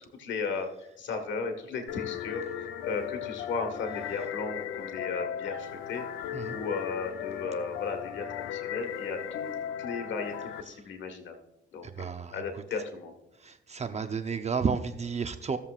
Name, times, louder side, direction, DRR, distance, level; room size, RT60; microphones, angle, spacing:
voice 1, 0.0-6.0 6.5-9.5 9.8-11.3 11.7-13.1, left 4 dB, 70° left, 5 dB, 1.6 m, -35 dB
sound 1, 1.9-10.6, left 10 dB, 85° left, 0.7 m, -37 dB
voice 2, 11.8-12.4 13.4-15.6, right 5 dB, 35° right, 7 dB, 0.7 m, -32 dB
15.5 x 7.2 x 2.4 m, 0.88 s
cardioid pair, 90°, 20 cm